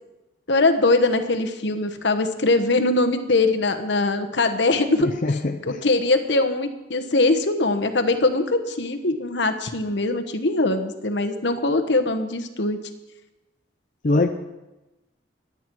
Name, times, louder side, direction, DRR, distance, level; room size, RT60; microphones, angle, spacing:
voice 1, 0.5-5.1 5.6-12.8, left 2 dB, 65° left, 7 dB, 1.2 m, -22 dB
voice 2, 5.0-5.8 14.0-14.3, left 2 dB, 45° left, 5 dB, 0.6 m, -22 dB
22.0 x 9.3 x 4.7 m, 1.0 s
head